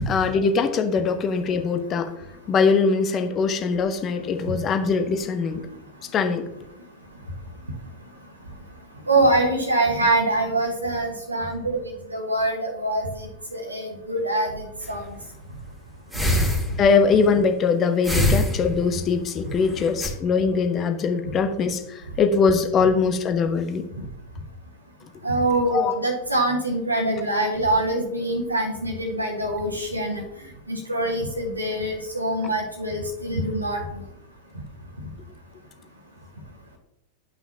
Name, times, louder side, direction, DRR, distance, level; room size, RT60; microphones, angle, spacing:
voice 1, 0.1-2.1 2.5-5.6 6.1-6.4 16.8-21.8 22.2-23.8 25.7-25.9, left 5 dB, 30° left, 6 dB, 1.0 m, -22 dB
voice 2, 9.1-11.8 12.1-14.6 14.9-15.0 25.2-30.2 30.7-33.8, right 1 dB, 85° right, -1 dB, 1.4 m, -24 dB
sound 1, 14.8-15.2 16.1-17.1 18.0-19.0 19.7-20.1, left 1 dB, ahead, 2.4 m, -23 dB
10.5 x 5.7 x 2.8 m, 0.83 s
figure-of-eight pair, 90°, 0 cm